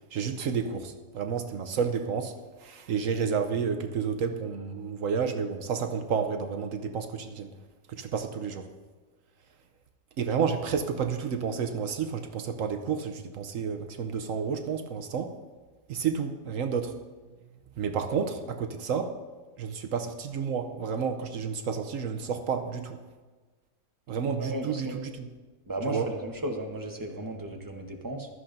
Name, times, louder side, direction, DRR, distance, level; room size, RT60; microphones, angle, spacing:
voice 1, 0.1-2.3 2.6-7.5 7.9-8.7 10.2-15.3 15.9-16.9 17.8-19.2 19.6-23.0 24.1-25.3 25.9-26.1, right 6 dB, 70° right, 7 dB, 1.1 m, -30 dB
voice 2, 24.4-25.0 25.7-28.3, right 1 dB, 15° right, 2 dB, 1.0 m, -35 dB
15.5 x 12.5 x 2.6 m, 1.3 s
omnidirectional pair, 1.5 m